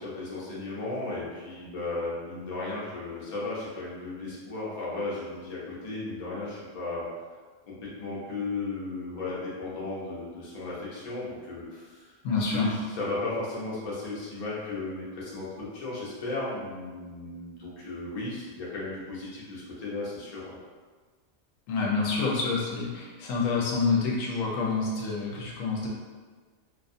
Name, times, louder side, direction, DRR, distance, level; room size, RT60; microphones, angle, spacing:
voice 1, 0.0-7.0 7.7-20.6, left 2 dB, 45° left, -6 dB, 0.5 m, -35 dB
voice 2, 12.2-12.7 21.7-25.9, left 4 dB, 80° left, -3 dB, 0.9 m, -27 dB
2.4 x 2.2 x 2.6 m, 1.4 s
omnidirectional pair, 1.4 m